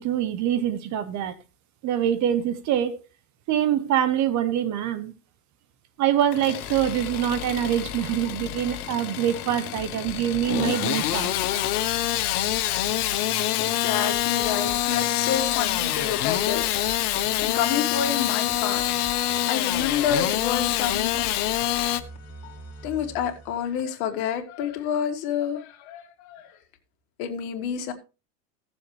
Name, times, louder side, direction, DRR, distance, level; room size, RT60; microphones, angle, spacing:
voice 1, 0.0-1.3 1.8-3.0 3.5-5.1 6.0-11.4, right 10 dB, 40° right, 1.1 m, -25 dB
Engine starting / Sawing, 6.2-22.0, left 13 dB, 70° left, 1.2 m, -26 dB
sound 1, 6.6-24.1, left 4 dB, 30° left, 2.5 m, -43 dB
voice 2, 13.6-16.6 17.4-18.9 19.5-21.3 22.8-26.0 26.3-26.4 27.2-27.9, left 8 dB, 50° left, 2.1 m, -28 dB
16.5 x 7.1 x 3.2 m
supercardioid pair, 120°, 46 cm